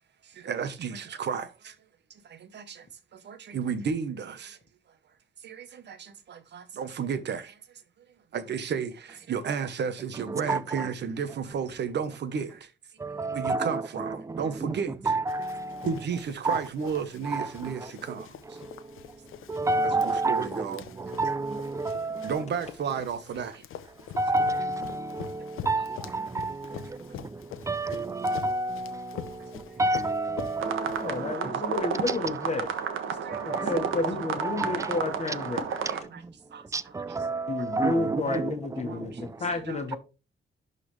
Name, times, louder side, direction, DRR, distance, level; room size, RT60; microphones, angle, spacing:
voice 1, 0.2-1.8 2.1-4.6 5.4-7.6 8.3-12.7 13.3-14.9 15.8-18.6 20.0-20.8 22.2-23.6 27.1-27.2 29.4-29.5 33.2-33.6 35.9-36.2 36.5-36.6 38.9-39.2 39.7-40.0, right 6 dB, 55° right, 1.1 m, -33 dB
voice 2, 10.1-10.9 13.0-16.0 16.4-16.6 17.2-18.1 18.4-22.4 24.0-32.2 33.3-39.5, right 2 dB, 15° right, 0.4 m, -31 dB
Run, 15.3-31.4, left 9 dB, 90° left, 0.9 m, -45 dB
sound 1, 30.6-36.0, right 7 dB, 75° right, 1.4 m, -32 dB
voice 3, 31.0-32.7 33.4-35.6 37.5-39.1 39.4-40.0, left 3 dB, 35° left, 1.4 m, -30 dB
11.5 x 4.2 x 3.2 m
wide cardioid pair, 150°, 21 cm